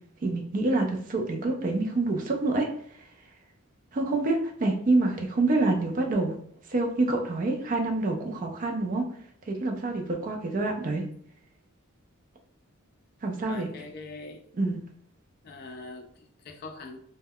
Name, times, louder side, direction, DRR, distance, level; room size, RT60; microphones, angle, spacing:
voice 1, 0.2-2.7 3.0-3.1 3.9-6.4 6.7-9.0 9.5-11.0 13.2-13.7 14.5-14.8, right 2 dB, 40° right, 2 dB, 0.4 m, -27 dB
voice 2, 13.5-14.4 15.4-17.0, left 3 dB, 45° left, 3 dB, 0.4 m, -42 dB
2.2 x 2.1 x 3.4 m, 0.64 s
head